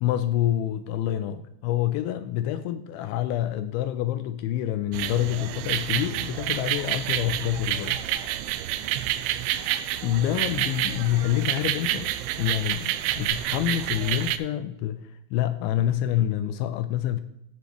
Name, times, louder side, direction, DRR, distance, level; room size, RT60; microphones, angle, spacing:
voice 1, 0.0-8.0 10.0-12.1 12.4-17.2, left 12 dB, 85° left, 11 dB, 2.8 m, -27 dB
soufriere soir, 4.9-14.4, right 13 dB, 85° right, 2.8 m, -28 dB
17.5 x 7.2 x 3.2 m, 0.78 s
omnidirectional pair, 5.6 m